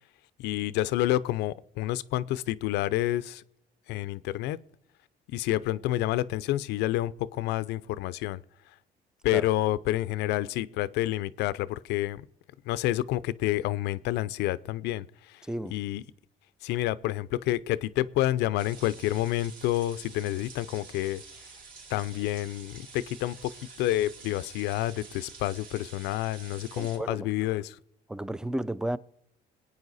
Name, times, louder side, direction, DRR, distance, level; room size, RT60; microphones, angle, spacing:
voice 1, 0.4-3.4 3.9-4.6 5.3-8.4 9.2-12.2 12.7-15.4 15.7-16.0 16.6-21.2 21.9-23.5 23.8-27.8, left 15 dB, 85° left, 0.5 m, -29 dB
voice 2, 15.4-15.8 26.8-27.3 28.1-29.0, right 1 dB, 5° right, 0.4 m, -33 dB
sound 1, 18.6-27.0, right 4 dB, 55° right, 4.1 m, -48 dB
21.5 x 9.1 x 4.1 m
cardioid pair, 110°, 17 cm